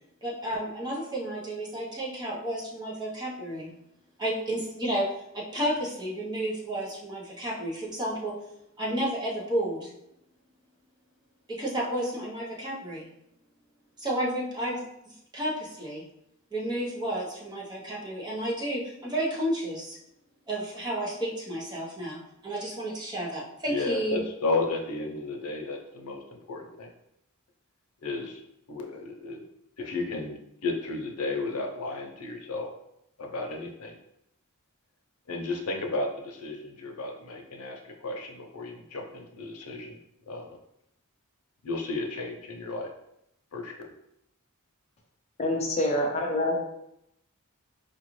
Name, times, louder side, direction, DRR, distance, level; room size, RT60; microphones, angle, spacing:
voice 1, 0.2-3.7 4.2-5.1 5.3-8.4 8.8-9.9 11.5-13.0 14.0-16.0 16.5-20.0 20.5-24.2, right 1 dB, 20° right, -5 dB, 0.9 m, -31 dB
voice 2, 23.7-26.2 26.5-26.9 28.0-28.4 28.7-29.4 29.8-32.7 33.2-34.0 35.3-40.0 40.3-40.5 41.6-42.9 43.5-43.7, left 3 dB, 90° left, 1 dB, 0.7 m, -33 dB
voice 3, 45.4-46.7, left 1 dB, 30° left, 1 dB, 0.5 m, -26 dB
4.6 x 2.5 x 3.1 m, 0.81 s
head